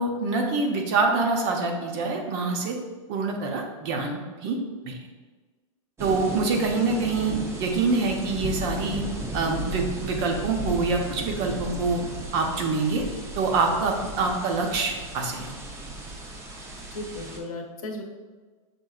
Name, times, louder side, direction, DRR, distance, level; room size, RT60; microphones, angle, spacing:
voice 1, 0.0-2.7 3.1-4.6 4.8-5.0 6.0-9.0 9.3-12.0 12.3-13.0 13.4-15.5, right 3 dB, 45° right, 2 dB, 0.8 m, -25 dB
sound 1, 6.0-17.4, right 1 dB, 15° right, 0.6 m, -35 dB
voice 2, 16.9-18.0, left 2 dB, 85° left, 2 dB, 0.8 m, -35 dB
6.6 x 2.7 x 2.4 m, 1.4 s
hypercardioid pair, 125°, 18 cm